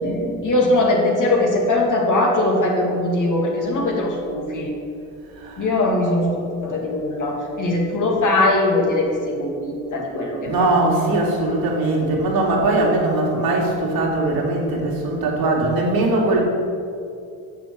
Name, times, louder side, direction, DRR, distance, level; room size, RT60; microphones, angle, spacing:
voice 1, 0.0-4.7 5.6-9.1 9.4-10.7, left 2 dB, 45° left, -1 dB, 2.4 m, -21 dB
voice 2, 10.4-16.4, right 2 dB, 60° right, -2 dB, 2.6 m, -20 dB
6.9 x 6.7 x 7.7 m, 2.5 s
supercardioid pair, 65°, 41 cm